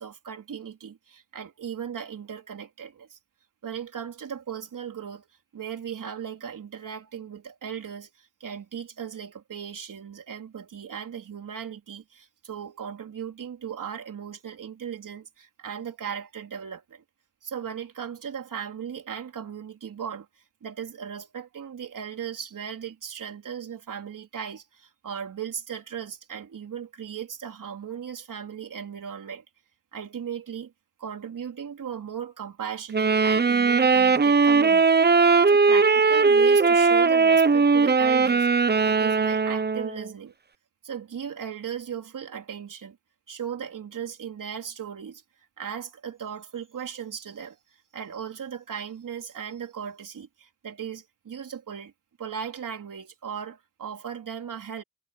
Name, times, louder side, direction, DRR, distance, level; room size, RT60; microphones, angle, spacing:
voice 1, 0.0-3.2 3.6-5.3 5.5-17.0 17.4-20.3 20.6-29.4 29.9-30.7 31.0-40.3 40.8-43.0 43.3-45.2 45.6-47.6 47.9-51.9 52.2-54.8, right 8 dB, 85° right, 3.9 m, -37 dB
Wind instrument woodwind instrument, 32.9-40.1, right 4 dB, 30° right, 0.9 m, -19 dB
wide cardioid pair, 95°, 31 cm